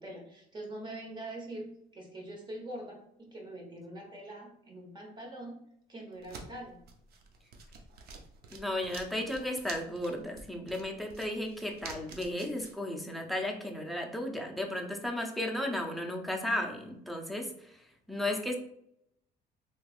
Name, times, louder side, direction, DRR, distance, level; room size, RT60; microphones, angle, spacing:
voice 1, 0.0-5.6 5.9-6.8, right 1 dB, 25° right, 0 dB, 1.1 m, -43 dB
sound 1, 6.1-12.7, right 4 dB, 65° right, 0.6 m, -49 dB
voice 2, 8.5-17.8 18.1-18.6, left 1 dB, ahead, 3 dB, 0.5 m, -34 dB
3.2 x 3.1 x 2.4 m, 0.75 s
cardioid pair, 110°, 17 cm